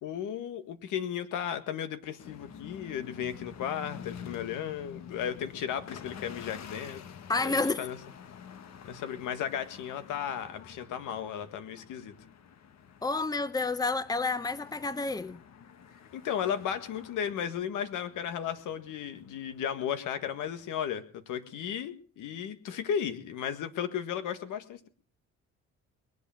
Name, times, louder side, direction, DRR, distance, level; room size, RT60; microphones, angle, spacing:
voice 1, 0.0-7.0 7.4-8.0 8.9-12.1 16.1-24.9, left 9 dB, 85° left, 1.8 m, -35 dB
sound 1, 2.2-20.8, left 8 dB, 60° left, 1.4 m, -49 dB
voice 2, 7.3-7.8 13.0-15.4, left 3 dB, 10° left, 1.0 m, -29 dB
22.0 x 8.2 x 7.1 m
cardioid pair, 90°, 30 cm